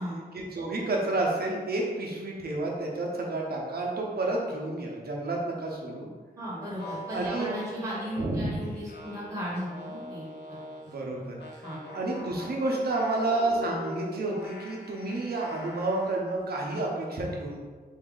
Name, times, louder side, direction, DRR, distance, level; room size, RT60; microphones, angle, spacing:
voice 1, 0.3-6.1 7.1-7.5 8.2-8.6 10.9-11.7 11.9-17.6, right 2 dB, 70° right, -2 dB, 0.8 m, -30 dB
voice 2, 6.4-10.3 10.8-11.3 11.6-11.8, equal, 20° right, -6 dB, 1.0 m, -36 dB
sound 1, 6.6-11.0 11.4-16.2, left 1 dB, 90° left, 0.5 m, -43 dB
3.5 x 2.7 x 3.8 m, 1.5 s
wide cardioid pair, 160°, 17 cm